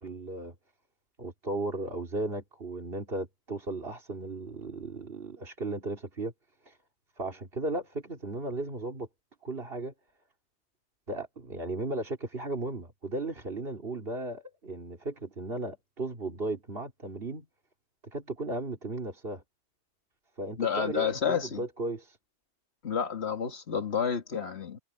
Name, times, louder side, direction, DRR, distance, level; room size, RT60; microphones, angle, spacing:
voice 1, 0.0-0.5 1.2-6.3 6.6-6.8 7.2-9.1 9.4-9.9 11.1-17.5 18.0-19.4 20.4-22.2, right 2 dB, 50° right, 3.0 m, -35 dB
voice 2, 20.6-21.6 22.8-24.8, left 7 dB, 60° left, 2.0 m, -30 dB
omnidirectional pair, 1.2 m